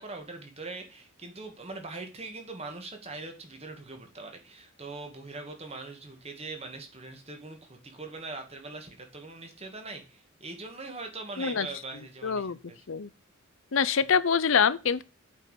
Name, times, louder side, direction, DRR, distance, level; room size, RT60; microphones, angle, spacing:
voice 1, 0.0-12.8 14.0-14.1, right 3 dB, 30° right, 2.1 m, -42 dB
voice 2, 12.2-12.6 12.9-13.1 13.7-15.0, left 6 dB, 65° left, 0.6 m, -25 dB
8.5 x 5.5 x 6.7 m
head